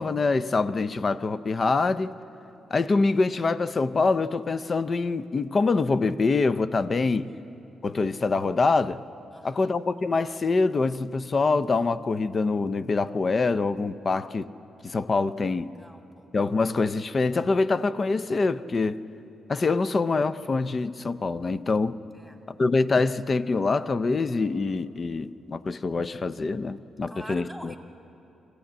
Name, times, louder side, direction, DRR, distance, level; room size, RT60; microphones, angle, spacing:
voice 1, 0.0-2.2 2.7-7.3 7.8-9.0 9.4-14.5 14.8-15.7 16.3-19.0 19.5-22.0 22.5-27.7, left 3 dB, 35° left, 0.6 m, -25 dB
voice 2, 9.3-9.7 15.4-16.3 22.1-22.4 27.1-27.8, equal, 5° left, 2.0 m, -47 dB
25.0 x 15.5 x 8.8 m
cardioid pair, 110°, 0 cm